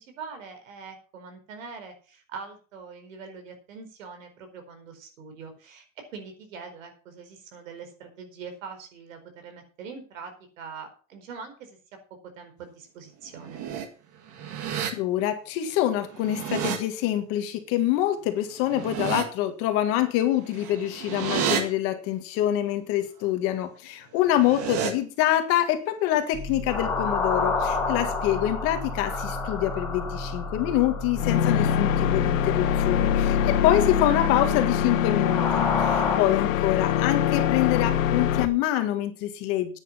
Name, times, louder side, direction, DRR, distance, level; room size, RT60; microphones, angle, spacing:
voice 1, 0.0-11.8 12.1-13.6 36.6-36.8, right 5 dB, 75° right, 6 dB, 4.7 m, -43 dB
sound 1, 13.3-13.9 14.3-14.9 16.0-16.8 18.6-19.2 20.5-21.6 24.1-24.9, right 8 dB, 35° right, 1.9 m, -30 dB
voice 2, 14.9-39.8, left 12 dB, 35° left, 7 dB, 1.7 m, -26 dB
sound 2, 26.3-36.2, left 3 dB, 5° left, 2.3 m, -30 dB
sound 3, 31.2-38.5, left 10 dB, 80° left, 1.6 m, -24 dB
9.8 x 9.6 x 6.0 m, 0.38 s
supercardioid pair, 170°, 39 cm